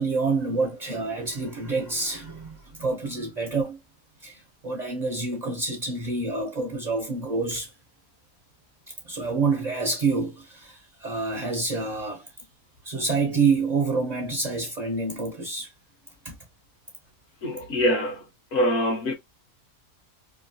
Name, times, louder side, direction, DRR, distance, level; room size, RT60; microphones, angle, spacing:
voice 1, 0.0-3.8 4.2-7.7 9.0-12.3 12.8-15.7 16.2-16.4, right 4 dB, 60° right, 0.4 m, -27 dB
voice 2, 17.4-18.2 18.5-19.1, equal, 65° left, 1.1 m, -24 dB
3.0 x 2.3 x 2.6 m
omnidirectional pair, 1.6 m